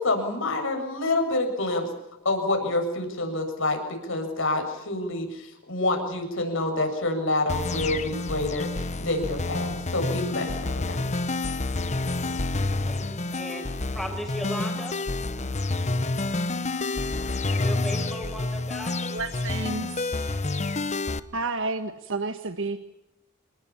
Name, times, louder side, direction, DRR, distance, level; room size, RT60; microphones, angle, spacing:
voice 1, 0.0-1.9 2.2-11.1, left 2 dB, 65° left, 4 dB, 7.8 m, -27 dB
sound 1, 7.5-21.2, left 2 dB, 35° left, 1.0 m, -29 dB
voice 2, 12.8-15.0 17.5-18.9, equal, ahead, 3 dB, 6.9 m, -36 dB
voice 3, 19.1-20.0 21.3-22.8, right 3 dB, 65° right, 8 dB, 1.5 m, -30 dB
28.0 x 21.5 x 7.2 m, 0.90 s
head